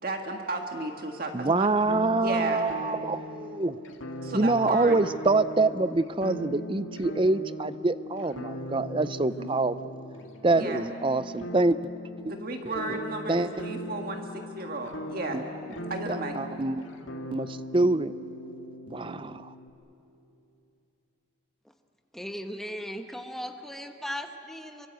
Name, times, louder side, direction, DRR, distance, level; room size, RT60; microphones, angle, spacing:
voice 1, 0.0-1.7 2.2-2.6 4.2-4.9 9.4-9.6 10.5-10.8 12.2-15.4 15.9-16.4, right 2 dB, 50° right, 3 dB, 1.7 m, -34 dB
voice 2, 1.3-3.8 4.3-9.8 10.4-11.8 12.9-13.0 13.3-13.5 15.3-15.4 16.1-16.8 17.3-18.1 18.9-19.5, right 2 dB, 25° right, 14 dB, 0.5 m, -26 dB
sound 1, 1.9-19.7, left 1 dB, 85° left, 2.1 m, -39 dB
voice 3, 22.1-24.9, equal, ahead, 5 dB, 1.2 m, -37 dB
27.5 x 24.0 x 8.2 m, 2.8 s
head